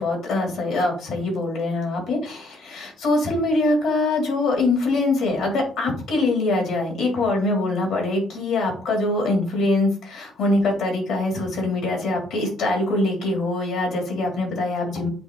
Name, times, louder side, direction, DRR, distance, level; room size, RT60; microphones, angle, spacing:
voice 1, 0.0-15.1, left 2 dB, 80° left, 0 dB, 3.1 m, -23 dB
8.4 x 2.9 x 3.9 m, 0.41 s
cardioid pair, 90°, 0 cm